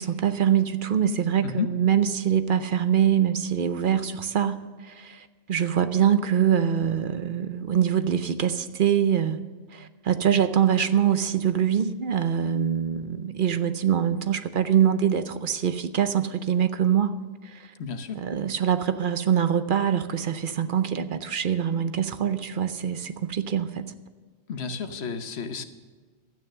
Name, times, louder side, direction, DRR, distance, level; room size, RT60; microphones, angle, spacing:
voice 1, 0.0-9.4 9.7-17.1 17.4-17.7 18.1-23.9, right 9 dB, 60° right, 11 dB, 0.8 m, -24 dB
voice 2, 17.8-18.2 24.5-25.6, left 6 dB, 90° left, 8 dB, 1.2 m, -31 dB
12.5 x 9.1 x 6.6 m, 1.4 s
omnidirectional pair, 1.1 m